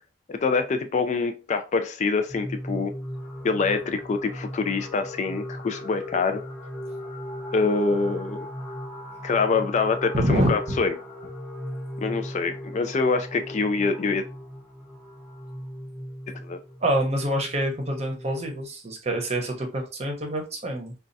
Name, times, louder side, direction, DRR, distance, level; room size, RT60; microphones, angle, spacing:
voice 1, 0.3-2.9 3.4-6.4 7.5-8.4 9.2-10.9 12.0-14.3 16.3-16.6, left 4 dB, 40° left, 7 dB, 0.3 m, -25 dB
sound 1, 2.3-18.6, equal, ahead, 0.7 m, -37 dB
voice 2, 10.1-10.8 16.8-20.9, right 1 dB, 35° right, 2 dB, 0.8 m, -26 dB
4.2 x 2.3 x 2.6 m, 0.32 s
head